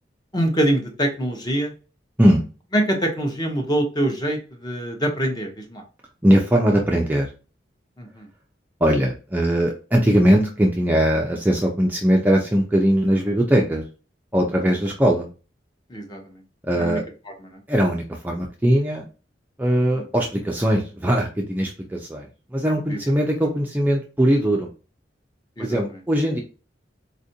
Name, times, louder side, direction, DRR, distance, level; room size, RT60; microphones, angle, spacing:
voice 1, 0.3-1.7 2.7-5.8 8.0-8.3 15.9-16.4 16.8-17.0 17.4-17.6 19.9-20.0 22.9-23.0 25.6-25.8, right 1 dB, 20° left, 3 dB, 0.8 m, -24 dB
voice 2, 6.2-7.3 8.8-13.8 14.3-15.3 16.7-17.0 17.7-19.0 19.6-24.7 25.6-26.4, equal, 10° right, 0 dB, 0.4 m, -20 dB
4.3 x 2.5 x 2.7 m, 0.34 s
head